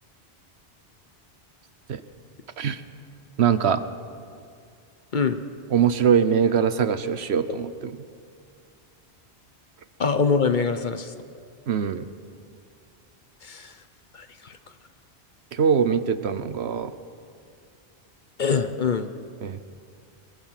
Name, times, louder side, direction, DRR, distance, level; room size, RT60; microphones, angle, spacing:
voice 1, 3.4-3.8 5.7-7.9 11.7-12.1 15.5-16.9 19.4-19.8, right 7 dB, 75° right, 12 dB, 1.1 m, -22 dB
voice 2, 10.0-11.1 13.4-13.8 14.1-14.6 18.4-19.1, left 5 dB, 50° left, 10 dB, 0.9 m, -24 dB
23.5 x 22.0 x 5.8 m, 2.3 s
omnidirectional pair, 1.1 m